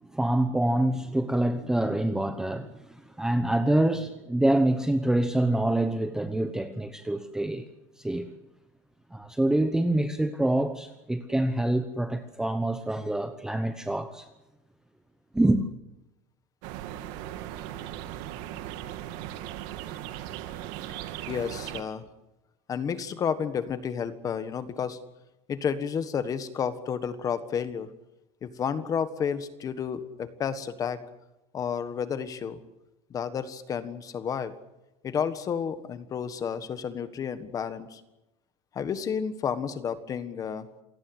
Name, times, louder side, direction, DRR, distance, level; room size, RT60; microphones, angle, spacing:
voice 1, 0.1-7.6 8.0-8.3 9.1-14.3 15.3-15.6, right 1 dB, 5° right, 0.9 m, -26 dB
sound 1, 16.6-21.8, right 12 dB, 55° right, 2.2 m, -38 dB
voice 2, 21.3-22.0 22.7-25.0 25.5-27.9 28.4-31.0 31.5-32.6 33.1-34.5 35.0-38.0 38.7-40.7, left 7 dB, 20° left, 1.5 m, -31 dB
27.5 x 17.5 x 8.1 m
cardioid pair, 170°, 16 cm